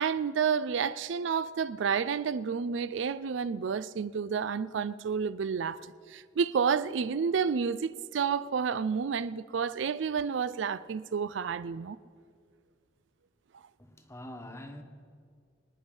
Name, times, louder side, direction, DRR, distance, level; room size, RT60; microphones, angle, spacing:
voice 1, 0.0-5.8 6.1-12.0, right 6 dB, 75° right, 0.4 m, -30 dB
voice 2, 13.8-14.8, left 1 dB, 15° left, 1.3 m, -44 dB
24.0 x 9.8 x 5.4 m
head